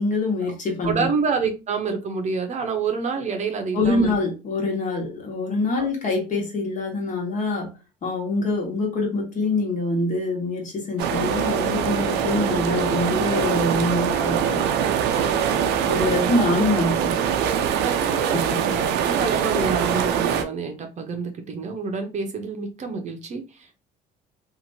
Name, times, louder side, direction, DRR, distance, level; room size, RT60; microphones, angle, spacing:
voice 1, 0.0-1.1 3.7-7.7 8.0-14.6 15.9-17.1 18.3-18.6, left 2 dB, 50° left, 1.3 m, -25 dB
voice 2, 0.8-4.1 5.8-5.9 11.9-12.4 15.5-16.7 17.7-23.8, right 5 dB, 45° right, 0.6 m, -28 dB
sound 1, 11.0-20.4, right 8 dB, 85° right, 0.5 m, -23 dB
2.8 x 2.5 x 2.6 m
cardioid pair, 110°, 17 cm